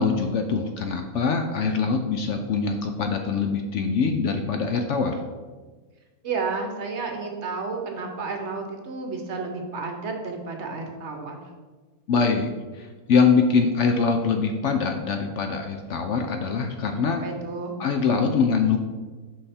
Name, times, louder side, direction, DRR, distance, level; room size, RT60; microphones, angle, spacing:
voice 1, 0.0-5.2 12.1-17.2 17.8-18.8, left 5 dB, 65° left, 5 dB, 0.8 m, -23 dB
voice 2, 6.2-11.4 17.2-17.7, right 4 dB, 55° right, 3 dB, 1.0 m, -31 dB
5.5 x 5.5 x 4.2 m, 1.4 s
omnidirectional pair, 1.5 m